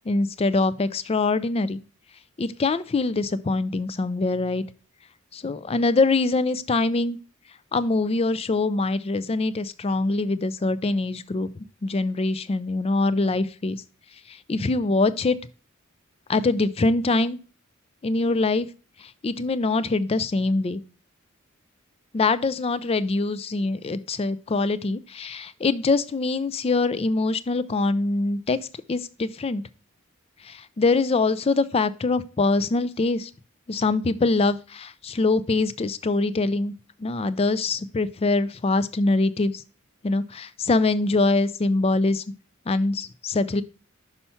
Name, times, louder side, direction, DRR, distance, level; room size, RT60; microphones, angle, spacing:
voice 1, 0.1-1.8 2.4-4.6 5.3-7.2 7.7-11.5 11.8-13.8 14.5-15.4 16.3-17.4 18.0-18.7 19.2-20.8 22.1-28.6 28.9-29.6 30.4-33.3 33.7-36.7 37.0-39.6 40.0-42.2 42.7-43.6, left 3 dB, 30° left, 15 dB, 0.4 m, -23 dB
5.7 x 5.6 x 4.2 m, 0.35 s
head